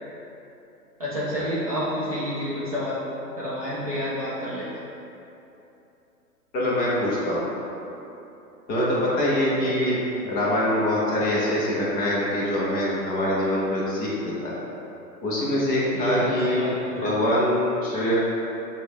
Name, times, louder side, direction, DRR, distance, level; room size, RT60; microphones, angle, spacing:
voice 1, 1.0-3.0 3.4-4.7 15.9-17.2, equal, 25° right, -10 dB, 0.4 m, -29 dB
voice 2, 6.5-7.4 8.7-10.0 10.2-14.5 15.2-16.6 17.0-18.1, left 1 dB, 20° left, -7 dB, 0.7 m, -24 dB
6.0 x 2.4 x 3.5 m, 2.9 s
hypercardioid pair, 130°, 48 cm